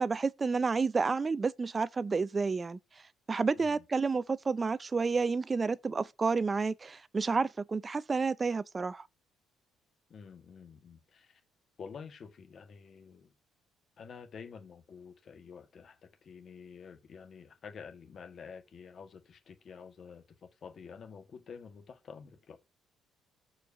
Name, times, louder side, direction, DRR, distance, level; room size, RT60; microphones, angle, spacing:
voice 1, 0.0-2.8 3.3-9.0, right 4 dB, 25° right, 0.5 m, -30 dB
voice 2, 3.5-3.8 10.1-11.4 11.8-13.3 14.0-22.6, left 6 dB, 45° left, 1.7 m, -49 dB
6.8 x 4.7 x 6.5 m
cardioid pair, 115°, 0 cm